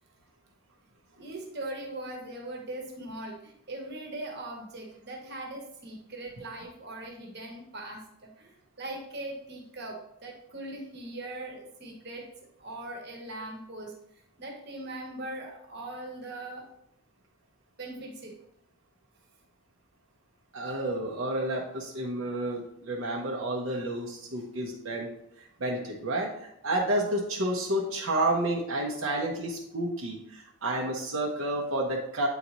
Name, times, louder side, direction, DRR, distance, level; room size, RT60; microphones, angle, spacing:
voice 1, 1.2-12.3 12.6-13.9 14.4-16.7 17.8-18.3, right 1 dB, 50° right, 1 dB, 1.1 m, -40 dB
voice 2, 20.5-25.1 25.4-32.3, right 1 dB, 80° right, -1 dB, 0.8 m, -30 dB
8.2 x 4.0 x 2.9 m, 0.73 s
head